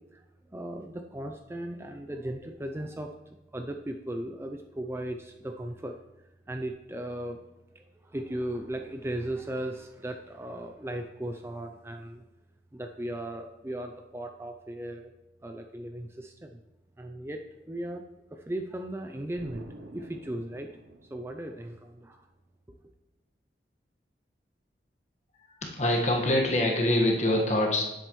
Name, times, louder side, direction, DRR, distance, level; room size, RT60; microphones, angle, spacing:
voice 1, 0.5-3.1 3.5-6.0 6.5-7.4 7.7-12.2 12.7-15.1 15.4-16.6 17.0-18.0 18.3-19.7 19.9-20.7 21.1-22.3 22.7-22.8, right 1 dB, 15° right, 5 dB, 0.4 m, -37 dB
Explosion, 19.4-22.0, right 1 dB, 60° right, 0.7 m, -49 dB
voice 2, 25.5-27.8, left 1 dB, 40° left, 0 dB, 1.5 m, -25 dB
11.0 x 7.8 x 3.1 m, 0.97 s
head